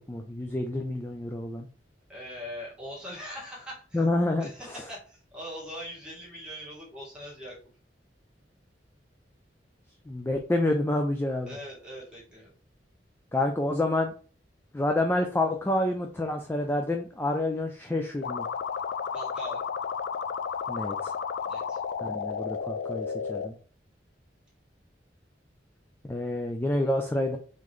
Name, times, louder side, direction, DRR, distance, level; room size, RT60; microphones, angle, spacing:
voice 1, 0.1-1.7 3.9-4.8 10.1-11.6 13.3-14.1 14.7-18.4 20.7-21.1 22.0-23.5 26.0-27.4, left 1 dB, 15° left, 3 dB, 0.4 m, -28 dB
voice 2, 2.1-4.0 4.4-7.6 11.5-12.5 19.1-19.6 21.4-21.8, equal, 5° right, -6 dB, 1.9 m, -41 dB
sound 1, 18.2-23.5, left 6 dB, 85° left, 0.3 m, -32 dB
3.8 x 3.8 x 3.1 m, 0.40 s
head